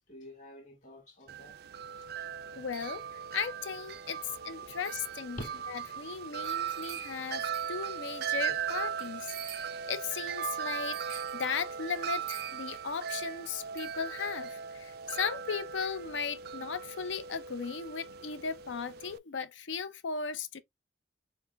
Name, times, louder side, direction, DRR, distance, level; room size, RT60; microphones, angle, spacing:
voice 1, 0.1-1.6 2.5-2.6 4.6-4.7 5.4-5.7, equal, 40° left, 1.9 m, -46 dB
Wind chime, 1.3-19.2, right 8 dB, 55° right, 0.3 m, -38 dB
voice 2, 2.5-4.2 4.4-5.4 5.7-20.6, left 6 dB, 80° left, 0.6 m, -37 dB
5.8 x 2.2 x 3.4 m
head